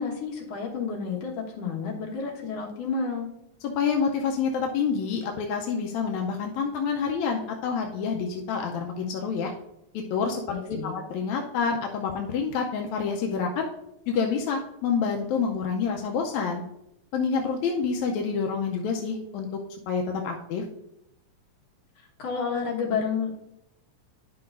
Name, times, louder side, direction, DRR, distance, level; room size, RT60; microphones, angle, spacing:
voice 1, 0.0-3.3 10.5-11.0 22.2-23.3, left 5 dB, 60° left, -2 dB, 2.3 m, -30 dB
voice 2, 3.6-9.5 9.9-10.4 10.7-10.8 11.1-13.7 14.1-16.6 17.1-19.5 19.9-20.6, left 5 dB, 85° left, 2 dB, 2.0 m, -27 dB
10.5 x 5.8 x 2.5 m, 0.81 s
omnidirectional pair, 3.3 m